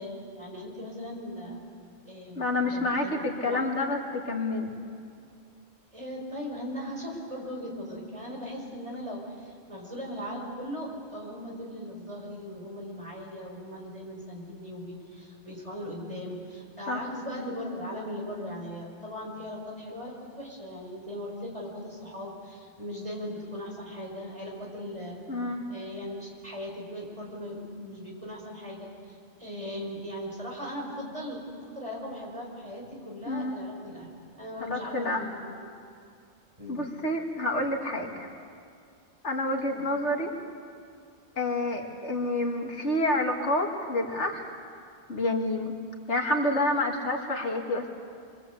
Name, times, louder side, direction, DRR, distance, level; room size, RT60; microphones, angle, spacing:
voice 1, 0.0-1.6 2.1-3.7 5.9-25.2 25.7-31.4 31.7-34.1 34.4-35.7 36.6-36.9 39.7-39.9, equal, 30° right, -1 dB, 5.4 m, -39 dB
voice 2, 2.4-4.7 16.9-17.1 25.3-25.7 33.3-33.6 34.7-35.3 36.7-38.3 39.2-40.3 41.4-44.4 45.1-45.7 46.1-47.9, left 1 dB, 85° left, 2 dB, 2.6 m, -28 dB
26.0 x 23.5 x 8.4 m, 2.3 s
omnidirectional pair, 1.2 m